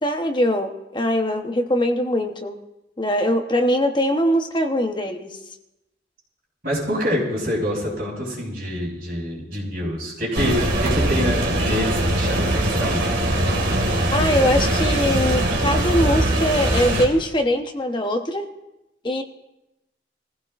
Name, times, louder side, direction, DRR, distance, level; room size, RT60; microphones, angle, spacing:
voice 1, 0.0-2.6 3.0-5.4 14.1-18.5 19.0-19.2, equal, 25° left, 5 dB, 1.0 m, -22 dB
voice 2, 6.6-13.0, equal, 55° right, -4 dB, 5.8 m, -26 dB
sound 1, 10.3-17.1, right 1 dB, 70° right, 2.3 m, -21 dB
23.5 x 15.5 x 2.5 m, 0.93 s
head